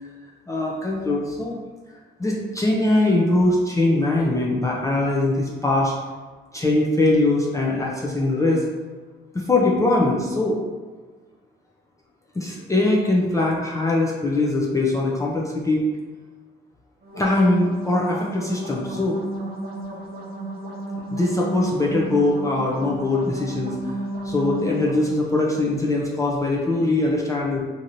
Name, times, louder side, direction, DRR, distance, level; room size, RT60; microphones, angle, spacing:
voice 1, 0.5-1.6 2.2-5.9 6.5-8.7 9.3-10.6 12.3-15.9 17.1-19.2 21.1-23.7 24.2-27.6, left 2 dB, 15° left, -4 dB, 0.5 m, -21 dB
sound 1, 17.0-25.0, right 2 dB, 50° right, 0.7 m, -33 dB
2.9 x 2.6 x 2.6 m, 1.4 s
cardioid pair, 90°, 20 cm